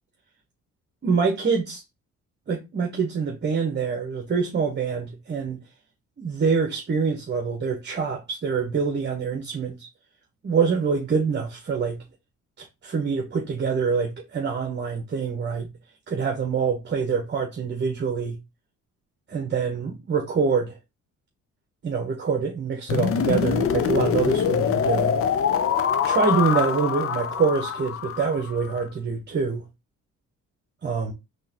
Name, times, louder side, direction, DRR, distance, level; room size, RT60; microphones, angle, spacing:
voice 1, 1.0-1.8 2.5-5.6 6.2-9.9 10.4-12.0 12.6-15.7 16.1-18.4 19.3-20.8 21.8-25.2 26.0-29.6 30.8-31.1, right 5 dB, 35° right, 0.9 m, -25 dB
sound 1, 22.9-28.8, left 8 dB, 50° left, 0.5 m, -24 dB
3.8 x 2.9 x 2.8 m
cardioid pair, 90°, 30 cm